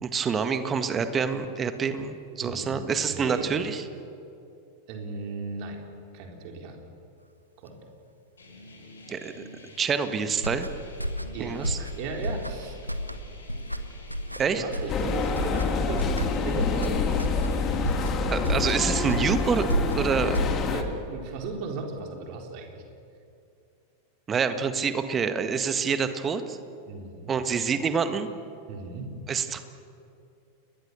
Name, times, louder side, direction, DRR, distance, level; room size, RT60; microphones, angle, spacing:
voice 1, 0.0-3.8 9.1-9.3 9.8-10.7 11.4-11.8 14.4-14.6 18.3-19.7 19.9-20.4 24.3-26.6 27.3-28.3 29.3-29.6, right 6 dB, 20° right, 9 dB, 1.7 m, -27 dB
voice 2, 2.4-3.5 4.9-5.8 6.1-6.8 7.6-7.8 11.3-12.8 14.5-17.2 20.6-22.8 26.9-27.4 28.7-29.1, right 3 dB, 45° right, 2 dB, 4.3 m, -36 dB
sound 1, 8.4-18.1, left 2 dB, 70° left, 5.1 m, -49 dB
sound 2, 10.3-21.0, equal, 90° right, 1.2 m, -32 dB
sound 3, 14.9-20.8, left 4 dB, 30° left, 2.3 m, -27 dB
29.5 x 22.0 x 7.0 m, 2.6 s
figure-of-eight pair, 90°, 0 cm